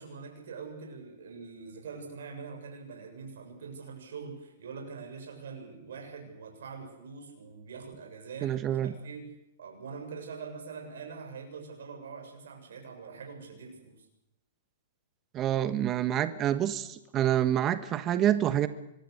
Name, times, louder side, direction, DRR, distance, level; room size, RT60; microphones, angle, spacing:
voice 1, 0.0-9.3 9.6-14.1, right 5 dB, 70° right, 7.2 m, -44 dB
voice 2, 8.4-8.9 15.3-18.7, right 11 dB, 30° right, 1.3 m, -27 dB
26.0 x 23.0 x 6.6 m
hypercardioid pair, 115°, 0 cm